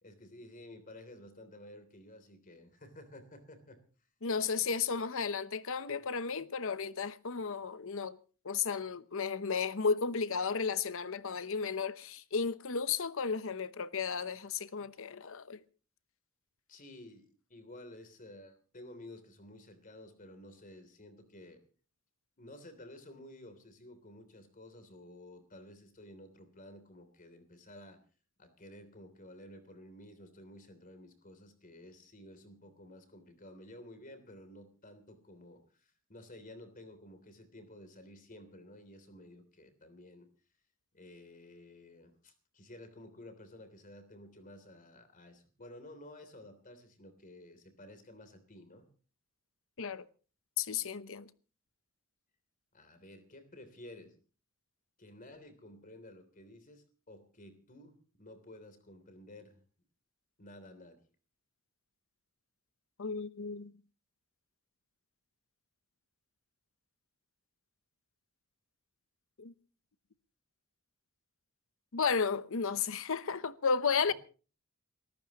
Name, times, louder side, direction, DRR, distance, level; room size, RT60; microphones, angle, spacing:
voice 1, 0.0-3.8 4.6-4.7 16.7-21.6 22.4-28.0 28.4-40.3 40.9-48.9 52.7-54.1 55.0-59.6 60.4-61.0 74.1-74.2, left 1 dB, 40° left, 3.2 m, -53 dB
voice 2, 4.2-8.2 8.4-15.6 49.8-50.1 50.6-51.3 63.0-63.7 69.4-69.5 71.9-74.1, left 5 dB, 65° left, 0.9 m, -33 dB
29.0 x 14.5 x 3.0 m
head